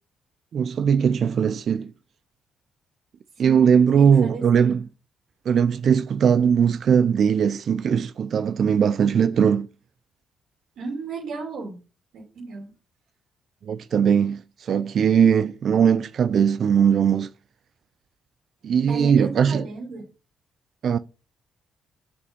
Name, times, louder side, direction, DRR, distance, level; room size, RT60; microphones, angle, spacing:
voice 1, 0.5-1.9 3.4-4.8 5.5-9.7 13.7-17.3 18.6-19.6 20.8-21.0, right 7 dB, 60° right, 0.4 m, -20 dB
voice 2, 3.3-4.8 10.8-11.8 12.1-12.7 18.9-20.1, right 3 dB, 75° right, 2.7 m, -35 dB
6.6 x 5.2 x 5.2 m
cardioid pair, 90°, 0 cm